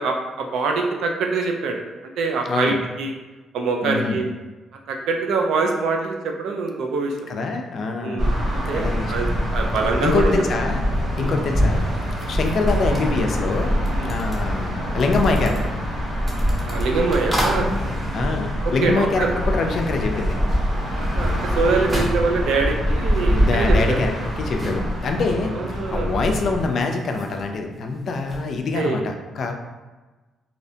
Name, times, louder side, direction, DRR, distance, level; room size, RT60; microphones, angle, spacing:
voice 1, 0.0-1.8 2.2-3.1 3.5-4.3 4.9-7.3 8.0-10.4 11.1-11.3 14.0-14.1 16.6-17.7 18.6-19.3 20.9-24.0 25.5-26.2 28.7-29.0, right 4 dB, 80° right, 2 dB, 0.3 m, -24 dB
voice 2, 3.8-4.3 7.3-8.3 8.7-9.3 10.0-10.8 11.2-11.9 12.3-13.7 14.0-15.7 18.1-20.4 23.3-29.5, left 3 dB, 60° left, 4 dB, 0.3 m, -24 dB
sound 1, 8.2-26.7, equal, 40° right, 1.1 m, -24 dB
sound 2, 12.2-19.5 19.7-28.5, equal, 20° right, 0.7 m, -34 dB
2.7 x 2.1 x 2.7 m, 1.2 s
cardioid pair, 90°, 0 cm